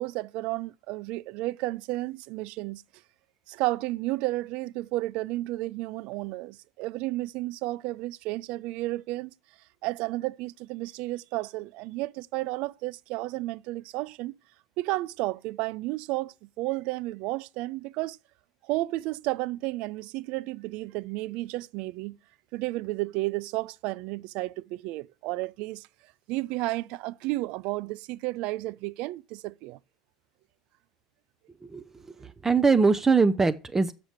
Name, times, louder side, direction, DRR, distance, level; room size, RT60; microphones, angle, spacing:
voice 1, 0.0-2.8 3.5-9.3 9.8-14.4 14.8-18.2 18.6-22.2 22.5-25.9 26.3-29.8, right 19 dB, 50° right, 0.4 m, -32 dB
voice 2, 32.2-33.9, right 4 dB, 15° right, 0.7 m, -22 dB
7.1 x 6.9 x 7.9 m
figure-of-eight pair, 70°, 2 cm